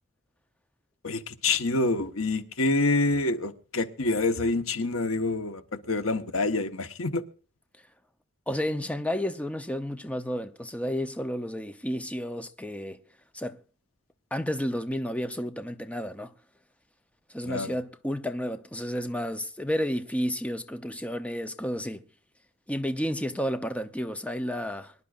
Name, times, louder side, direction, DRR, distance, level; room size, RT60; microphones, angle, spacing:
voice 1, 1.0-7.2 17.4-17.7, left 2 dB, 75° left, 1.3 m, -27 dB
voice 2, 8.5-13.0 13.3-13.6 14.3-16.3 17.3-22.0 22.7-24.9, equal, 5° left, 0.7 m, -31 dB
24.0 x 11.0 x 2.5 m
head